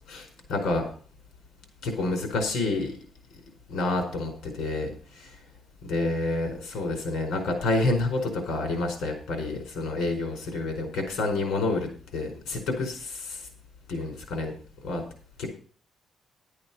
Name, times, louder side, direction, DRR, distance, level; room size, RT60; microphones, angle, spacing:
voice 1, 0.1-0.9 1.8-3.0 3.7-5.4 5.9-13.5 13.9-14.5 14.8-15.0 15.4-15.5, left 2 dB, 85° left, 5 dB, 4.8 m, -29 dB
12.0 x 8.7 x 5.6 m, 0.43 s
cardioid pair, 145°, 0 cm